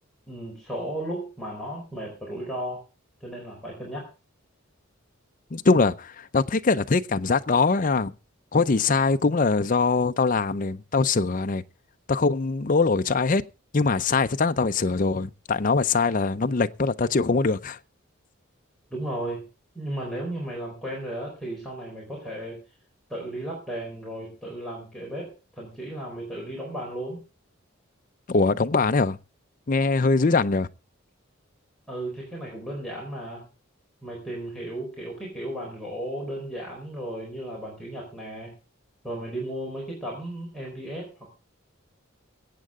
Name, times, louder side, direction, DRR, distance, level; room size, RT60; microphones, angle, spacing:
voice 1, 0.3-2.9 3.2-4.1 18.9-19.4 19.7-22.6 23.1-27.2 31.9-33.5 34.0-38.5 39.0-41.3, right 1 dB, ahead, 4.4 m, -35 dB
voice 2, 5.5-8.1 8.5-11.6 12.1-13.4 13.7-17.8 28.3-29.2 29.7-30.7, left 4 dB, 40° left, 0.6 m, -22 dB
23.0 x 8.5 x 3.7 m
head